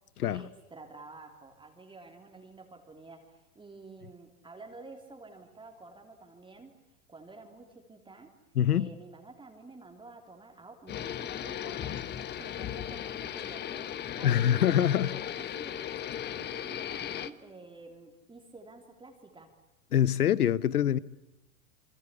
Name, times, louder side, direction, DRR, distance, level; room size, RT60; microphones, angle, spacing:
voice 1, 0.3-6.8 7.1-8.3 8.7-14.4 15.0-19.5, right 3 dB, 10° right, 3.2 m, -50 dB
voice 2, 8.6-8.9 14.2-15.2 19.9-21.0, left 10 dB, 85° left, 1.1 m, -24 dB
sound 1, 10.9-17.3, left 10 dB, 25° left, 1.1 m, -37 dB
28.5 x 23.5 x 8.3 m
hypercardioid pair, 115°, 44 cm